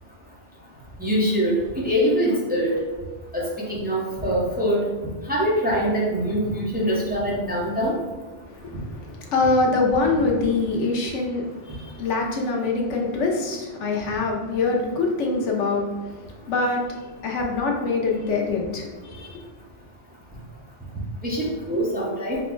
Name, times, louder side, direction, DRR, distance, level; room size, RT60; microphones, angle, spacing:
voice 1, 1.0-2.7 3.3-4.8 5.3-7.9 21.2-22.4, equal, 10° right, -6 dB, 0.7 m, -23 dB
voice 2, 8.5-19.4, left 3 dB, 90° left, 0 dB, 1.1 m, -24 dB
4.1 x 2.2 x 4.4 m, 1.2 s
omnidirectional pair, 1.2 m